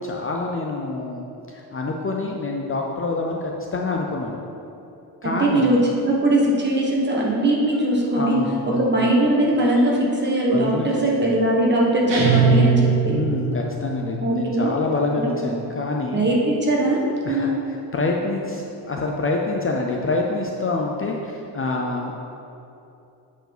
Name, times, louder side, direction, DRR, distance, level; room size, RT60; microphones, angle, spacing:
voice 1, 0.0-4.4 5.2-5.7 8.1-8.9 10.5-10.9 11.2-11.3 13.1-16.2 17.2-17.5 17.9-22.1, left 3 dB, 30° left, 0 dB, 0.5 m, -26 dB
voice 2, 5.2-8.4 8.8-13.2 14.2-14.7 15.2-15.6 16.1-17.0 17.3-17.6, right 1 dB, 25° right, -3 dB, 1.3 m, -20 dB
sound 1, 12.1-13.8, right 5 dB, 85° right, 2.0 m, -19 dB
8.0 x 4.7 x 6.0 m, 2.9 s
wide cardioid pair, 175°, 41 cm